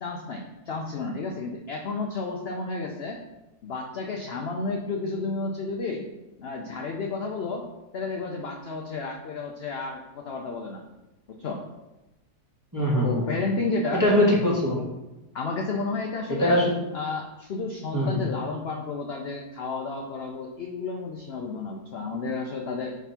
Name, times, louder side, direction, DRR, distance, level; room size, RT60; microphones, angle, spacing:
voice 1, 0.0-3.2 3.6-6.0 6.4-7.7 7.9-10.8 11.3-11.6 13.0-14.0 15.3-16.6 16.9-23.0, left 3 dB, 60° left, 1 dB, 0.6 m, -32 dB
voice 2, 12.7-13.3 13.9-14.8 16.3-16.6 17.9-18.2, left 1 dB, 10° right, -6 dB, 1.4 m, -22 dB
5.8 x 3.6 x 5.7 m, 1.0 s
omnidirectional pair, 1.7 m